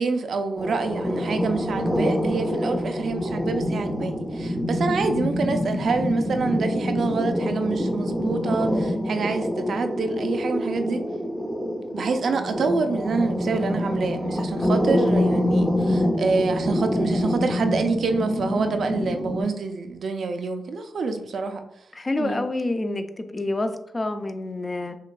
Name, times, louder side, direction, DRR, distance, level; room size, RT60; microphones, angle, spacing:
voice 1, 0.0-11.0 11.9-21.6 22.2-22.4, right 4 dB, 70° right, 7 dB, 0.4 m, -27 dB
sound 1, 0.6-19.4, equal, 5° right, 0.6 m, -26 dB
voice 2, 14.6-14.9 21.9-25.0, left 2 dB, 35° left, 8 dB, 0.4 m, -28 dB
5.7 x 2.3 x 2.2 m, 0.79 s
cardioid pair, 55°, 0 cm